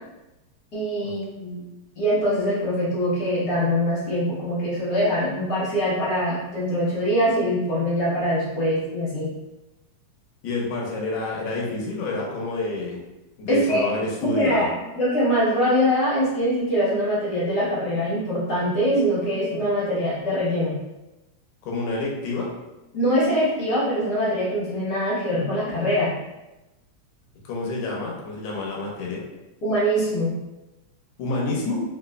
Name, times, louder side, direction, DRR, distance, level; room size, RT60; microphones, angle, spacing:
voice 1, 0.7-1.6 2.0-9.3 13.5-13.8 14.2-14.7 14.9-20.7 22.9-26.1 29.6-30.3, equal, 90° left, -11 dB, 0.8 m, -23 dB
voice 2, 10.4-13.0 13.4-14.7 21.6-22.5 27.4-29.3 31.2-31.8, left 2 dB, 70° left, -2 dB, 1.7 m, -28 dB
4.9 x 2.6 x 2.2 m, 0.99 s
omnidirectional pair, 3.4 m